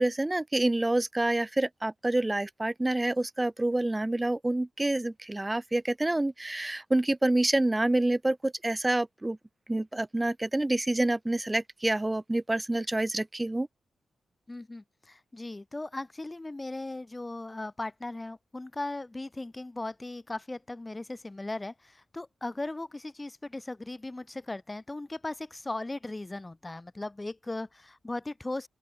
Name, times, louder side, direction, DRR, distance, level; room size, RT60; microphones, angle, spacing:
voice 1, 0.0-9.4 9.7-13.7, right 2 dB, 15° right, 1.2 m, -27 dB
voice 2, 14.5-28.7, left 2 dB, 15° left, 1.0 m, -38 dB
open air
wide cardioid pair, 120°, 0 cm